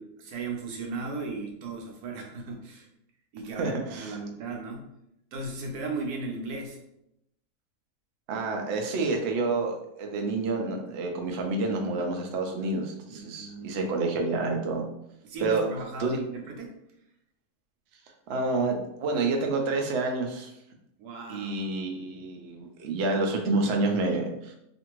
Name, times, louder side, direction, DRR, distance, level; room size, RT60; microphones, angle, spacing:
voice 1, 0.0-2.9 3.3-4.9 5.3-6.8 13.1-13.8 15.2-16.8 21.0-21.7, right 3 dB, 75° right, 2 dB, 1.1 m, -36 dB
voice 2, 3.6-4.1 8.3-14.8 15.4-15.6 16.0-16.2 18.3-20.5 21.3-24.5, right 3 dB, 90° right, 2 dB, 0.5 m, -28 dB
2.5 x 2.5 x 2.9 m, 0.81 s
omnidirectional pair, 1.7 m